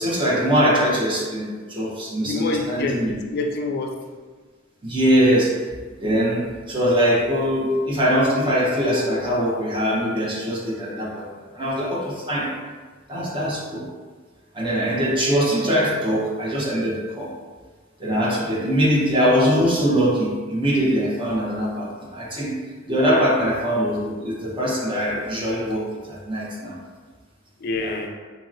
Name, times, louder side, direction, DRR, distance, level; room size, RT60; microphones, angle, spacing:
voice 1, 0.0-3.1 4.8-5.5 6.0-12.5 13.1-13.9 14.5-17.3 18.0-22.6 22.9-26.8 27.8-28.0, equal, 25° right, -5 dB, 0.8 m, -22 dB
voice 2, 2.2-4.0 12.4-12.5 18.2-18.4 27.6-28.1, left 3 dB, 50° left, 3 dB, 0.3 m, -27 dB
4.0 x 2.8 x 2.5 m, 1.4 s
head